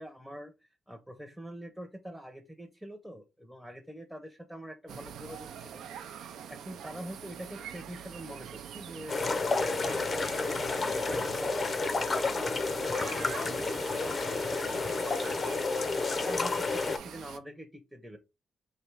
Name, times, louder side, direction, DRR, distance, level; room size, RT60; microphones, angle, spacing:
voice 1, 0.0-5.9 6.5-15.4 15.9-18.2, equal, 5° right, 7 dB, 0.6 m, -45 dB
sound 1, 4.9-17.4, right 8 dB, 85° right, 0.4 m, -45 dB
sound 2, 9.1-17.0, left 3 dB, 40° left, 0.5 m, -30 dB
3.2 x 2.7 x 4.5 m, 0.27 s
cardioid pair, 95°, 0 cm